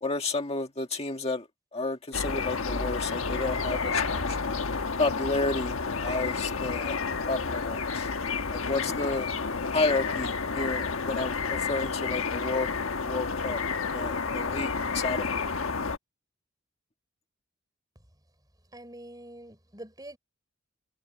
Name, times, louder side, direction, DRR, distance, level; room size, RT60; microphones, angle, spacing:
voice 1, 0.0-4.4 5.0-7.0 7.3-8.1 8.5-9.3 9.7-12.7 13.0-15.5, left 3 dB, 30° left, 1.9 m, -31 dB
sound 1, 2.1-16.0, left 4 dB, 80° left, 1.3 m, -30 dB
voice 2, 18.7-20.2, right 1 dB, 20° right, 5.0 m, -45 dB
head